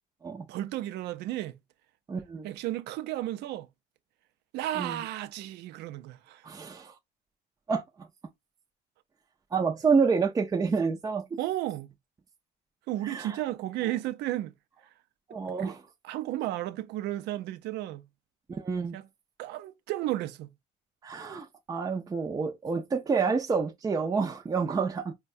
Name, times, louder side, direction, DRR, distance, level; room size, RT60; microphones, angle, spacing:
voice 1, 0.5-1.6 2.4-3.7 4.5-6.4 11.4-11.9 12.9-14.5 15.6-15.7 16.0-18.1 18.9-19.1 19.4-20.5, right 14 dB, 80° right, 0.5 m, -33 dB
voice 2, 2.1-2.5 4.8-5.0 6.4-6.9 7.7-8.1 9.5-11.3 13.0-13.4 15.3-15.8 18.5-18.9 21.0-25.1, right 5 dB, 20° right, 0.5 m, -28 dB
4.5 x 2.2 x 2.5 m
cardioid pair, 110°, 17 cm